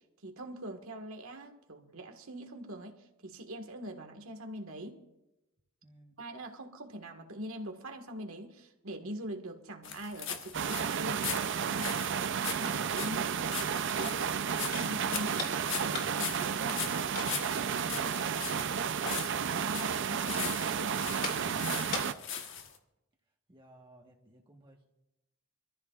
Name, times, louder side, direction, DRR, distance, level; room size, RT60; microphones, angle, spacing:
voice 1, 0.2-5.0 6.2-13.7 14.0-18.2 19.5-21.6, right 1 dB, 75° right, 4 dB, 1.7 m, -43 dB
voice 2, 5.8-6.2 23.5-24.9, right 1 dB, 25° right, 0 dB, 1.3 m, -58 dB
sound 1, 9.8-22.8, left 7 dB, 60° left, 1.3 m, -40 dB
sound 2, 10.5-22.1, right 7 dB, 55° right, 0.5 m, -32 dB
sound 3, 13.5-22.2, left 3 dB, 45° left, 3.0 m, -44 dB
25.5 x 14.5 x 2.4 m, 0.94 s
head